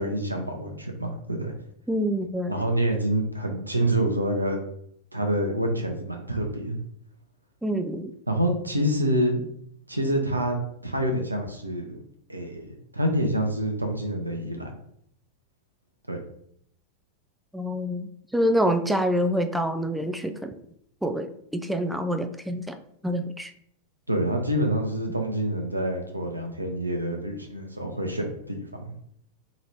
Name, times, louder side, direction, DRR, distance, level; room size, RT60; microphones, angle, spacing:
voice 1, 0.0-1.5 2.5-4.6 5.1-6.8 8.3-9.4 9.9-12.0 12.3-12.7 12.9-14.7 16.1-16.2 24.1-28.9, right 1 dB, 90° right, 3 dB, 0.8 m, -27 dB
voice 2, 1.9-2.6 7.6-8.1 17.5-20.5 21.0-22.8 23.0-23.5, equal, 5° right, 7 dB, 0.4 m, -26 dB
3.8 x 3.1 x 4.3 m, 0.69 s
figure-of-eight pair, 90°, 0 cm